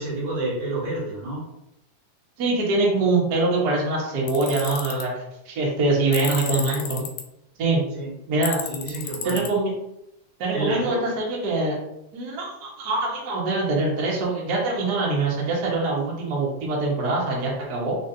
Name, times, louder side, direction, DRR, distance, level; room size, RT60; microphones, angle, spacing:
voice 1, 0.0-1.4 7.9-8.1 8.7-9.4 10.5-11.0, right 2 dB, 50° right, -5 dB, 2.1 m, -29 dB
voice 2, 2.4-7.1 7.6-7.8 8.3-8.6 9.2-9.7 10.4-11.8 12.1-18.0, right 2 dB, 75° right, -4 dB, 0.8 m, -24 dB
Tools, 4.3-5.0 6.1-7.2 8.4-9.5, left 8 dB, 80° left, 1.9 m, -32 dB
4.2 x 4.1 x 2.8 m, 0.84 s
omnidirectional pair, 3.8 m